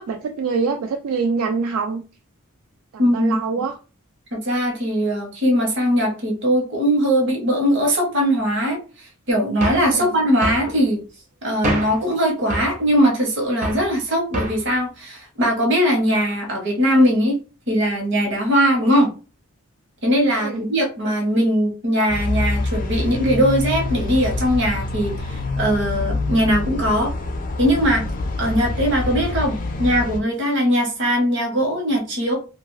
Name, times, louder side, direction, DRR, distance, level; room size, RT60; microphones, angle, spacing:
voice 1, 0.0-2.0 2.9-3.8 9.8-10.1 20.4-20.7, right 5 dB, 75° right, 0.3 m, -25 dB
voice 2, 3.0-3.4 4.3-8.8 9.3-11.0 11.4-17.4 17.7-19.1 20.0-27.1 27.6-28.0 28.4-32.4, equal, 50° right, 1.0 m, -20 dB
sound 1, 9.6-9.9 10.4-10.7 11.6-12.0 12.5-12.8 13.6-13.9 14.3-14.7, right 1 dB, 30° right, 0.6 m, -25 dB
sound 2, 22.1-30.2, left 2 dB, 40° left, 0.4 m, -26 dB
2.6 x 2.4 x 3.1 m
head